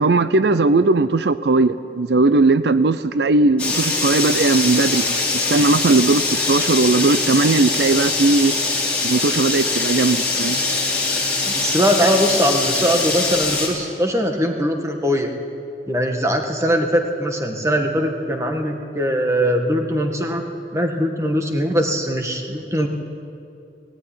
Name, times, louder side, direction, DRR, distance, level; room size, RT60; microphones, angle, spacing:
voice 1, 0.0-8.6 9.0-10.6, right 3 dB, 70° right, 13 dB, 0.5 m, -18 dB
sound 1, 3.6-13.7, left 3 dB, 5° left, 3.5 m, -22 dB
voice 2, 11.5-15.3 15.9-22.9, equal, 15° right, 3 dB, 1.6 m, -21 dB
17.5 x 17.0 x 10.0 m, 2.6 s
head